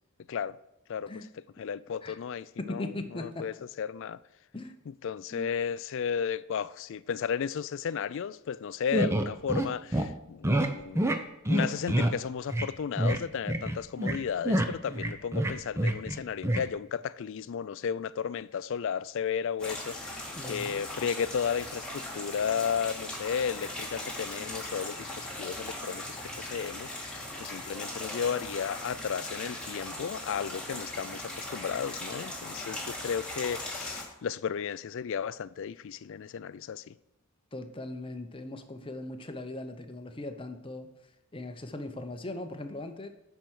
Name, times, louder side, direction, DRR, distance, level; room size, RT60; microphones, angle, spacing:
voice 1, 0.9-1.2 1.6-4.2 5.0-11.1 11.5-36.9, left 7 dB, 55° left, 0.3 m, -34 dB
voice 2, 2.6-3.5 4.5-4.8 5.3-5.5 20.4-20.7 37.5-40.9 41.3-43.1, left 2 dB, 25° left, 0.7 m, -39 dB
sound 1, 8.9-9.7 9.9-10.0 10.4-10.7 10.9-11.2 11.4-12.1 12.5-12.7 13.0-13.2 13.5-14.2 14.4-16.2 16.4-16.6, right 1 dB, 10° right, 0.6 m, -26 dB
sound 2, 19.6-34.0, left 1 dB, 5° left, 2.0 m, -39 dB
10.5 x 4.5 x 6.2 m
head